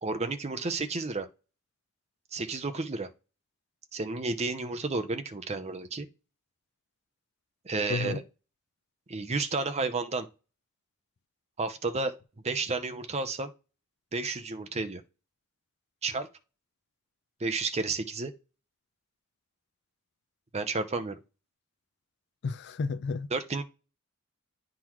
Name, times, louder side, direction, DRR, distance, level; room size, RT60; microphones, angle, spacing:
voice 1, 0.0-1.3 2.3-3.1 3.9-6.1 7.6-8.2 9.1-10.3 11.6-12.2 12.4-13.5 14.1-15.0 16.0-16.3 17.4-18.3 20.5-21.2 23.3-23.6, right 3 dB, 30° right, 0.6 m, -31 dB
voice 2, 7.9-8.2 22.4-23.3, left 4 dB, 55° left, 0.4 m, -31 dB
10.0 x 3.8 x 3.0 m
head